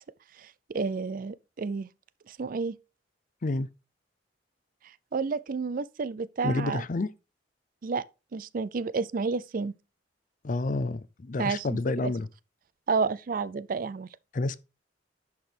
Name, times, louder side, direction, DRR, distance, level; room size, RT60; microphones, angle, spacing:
voice 1, 0.4-1.9 2.3-2.8 5.1-6.8 7.8-8.0 8.3-9.7 11.4-12.1 12.9-14.1, right 4 dB, 50° right, 0.4 m, -30 dB
voice 2, 6.4-7.1 10.4-12.3 14.3-14.6, left 2 dB, 45° left, 0.5 m, -29 dB
10.5 x 6.0 x 3.4 m
head